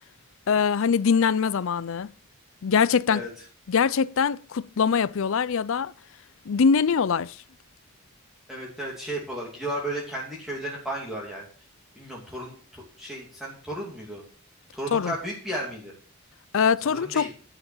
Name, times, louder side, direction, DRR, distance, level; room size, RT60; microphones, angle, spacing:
voice 1, 0.5-2.1 2.6-3.2 3.7-5.9 6.5-7.4 14.9-15.1 16.5-17.3, left 6 dB, 60° left, 0.5 m, -23 dB
voice 2, 8.5-11.5 12.0-14.2 14.7-15.9 16.8-17.3, right 1 dB, ahead, 2.7 m, -34 dB
12.0 x 5.9 x 7.2 m
head